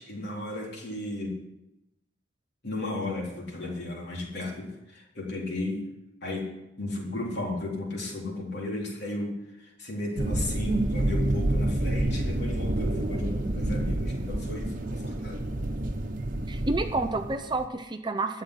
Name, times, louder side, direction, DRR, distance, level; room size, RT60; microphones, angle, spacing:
voice 1, 0.0-1.4 2.6-5.8 6.2-6.5 6.8-15.5, left 2 dB, 55° left, -1 dB, 3.9 m, -34 dB
sound 1, 10.2-17.7, right 1 dB, 40° right, 1.2 m, -29 dB
voice 2, 16.5-18.4, right 2 dB, 20° right, 7 dB, 0.7 m, -29 dB
12.5 x 7.7 x 10.0 m, 0.91 s
head